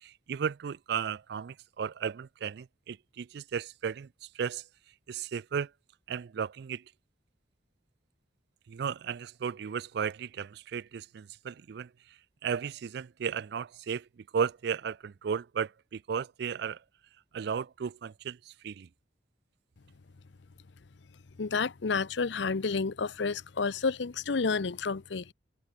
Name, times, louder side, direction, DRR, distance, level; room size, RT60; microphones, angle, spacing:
voice 1, 0.0-4.1 4.3-4.6 5.1-5.7 6.1-6.8 8.7-11.9 12.4-16.8 17.3-18.9, right 7 dB, 60° right, 0.4 m, -35 dB
voice 2, 21.4-25.3, left 4 dB, 70° left, 0.7 m, -30 dB
head